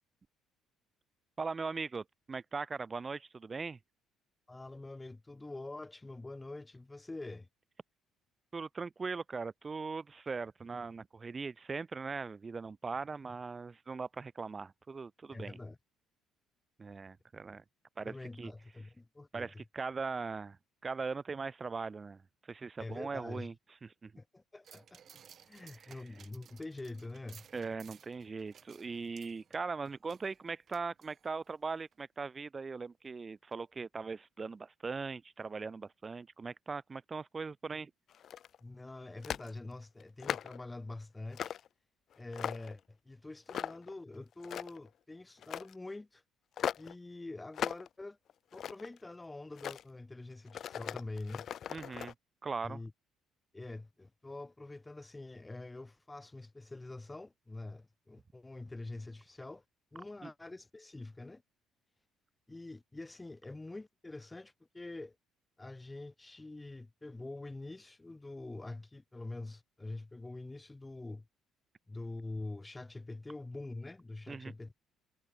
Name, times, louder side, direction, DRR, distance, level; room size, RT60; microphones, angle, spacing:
voice 1, 1.4-3.8 8.5-15.6 16.8-17.6 18.0-18.5 19.3-20.6 20.8-22.2 22.5-23.5 23.8-24.1 25.7-25.9 27.5-37.9 51.7-52.1 52.4-52.8 60.2-60.3 74.3-74.5, right 4 dB, 30° right, 1.7 m, -40 dB
voice 2, 4.5-7.5 15.3-15.8 18.1-19.5 22.8-23.5 24.2-25.0 25.5-27.4 38.6-41.5 42.2-46.2 46.8-48.2 48.5-51.5 52.6-52.9 53.5-59.6 59.9-61.4 62.5-65.2 65.6-71.3 71.9-74.8, left 2 dB, 15° left, 0.6 m, -45 dB
sound 1, 24.6-31.5 31.9-32.0, right 8 dB, 50° right, 2.6 m, -59 dB
sound 2, 38.1-38.6 39.2-39.5 40.0-40.6 41.3-41.7 42.1-42.8 43.5-43.9 44.3-44.9 45.4-45.7 46.6-46.9 47.5-47.9 48.3-49.0 49.5-49.8 50.5-52.1, left 9 dB, 55° left, 0.4 m, -39 dB
cardioid pair, 95°, 0 cm